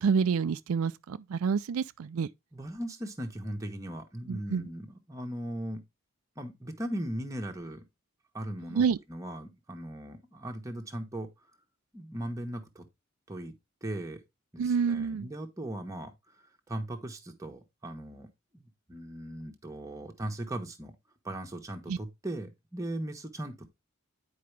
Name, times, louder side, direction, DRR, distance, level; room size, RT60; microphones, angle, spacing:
voice 1, 0.0-2.3 4.3-4.7 8.8-9.0 14.6-15.3 21.9-22.0, right 6 dB, 85° right, 0.4 m, -28 dB
voice 2, 2.5-5.8 6.4-7.8 8.3-11.3 11.9-12.9 13.3-13.5 13.8-14.2 14.5-18.3 18.5-20.9 21.2-23.7, right 1 dB, 15° right, 1.2 m, -38 dB
9.4 x 4.8 x 3.3 m
head